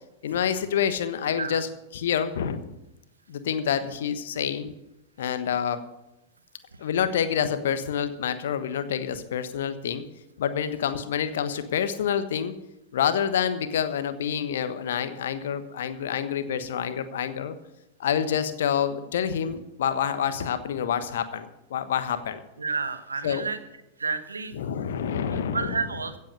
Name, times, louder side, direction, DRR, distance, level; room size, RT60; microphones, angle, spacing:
voice 1, 0.2-2.8 3.3-4.7 5.2-5.8 6.8-10.0 10.4-12.6 12.9-17.5 18.0-22.4 23.2-23.5 24.5-25.8, left 8 dB, 60° left, 11 dB, 1.2 m, -27 dB
voice 2, 22.6-23.6 24.0-24.6 25.5-26.2, right 4 dB, 75° right, 10 dB, 1.2 m, -30 dB
16.0 x 8.3 x 6.5 m, 0.90 s
figure-of-eight pair, 90°, 0 cm